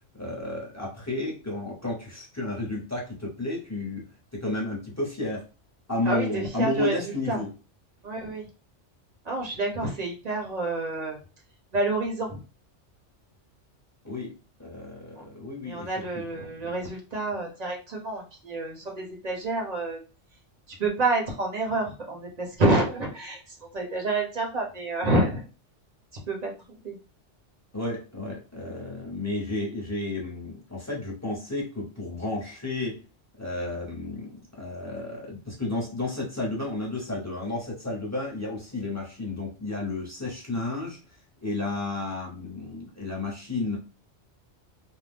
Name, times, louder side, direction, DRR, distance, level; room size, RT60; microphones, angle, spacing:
voice 1, 0.1-4.1 4.3-5.4 5.9-7.5 14.0-15.9 16.1-16.2 27.7-33.0 33.4-41.0 41.4-43.8, left 2 dB, 15° left, -2 dB, 0.9 m, -32 dB
voice 2, 6.1-7.4 8.0-8.5 9.2-11.2 11.7-12.4 15.2-15.3 15.6-20.0 20.8-23.4 23.7-25.4 26.3-26.9, right 2 dB, 40° right, 0 dB, 0.8 m, -28 dB
2.5 x 2.2 x 3.4 m, 0.33 s
omnidirectional pair, 1.2 m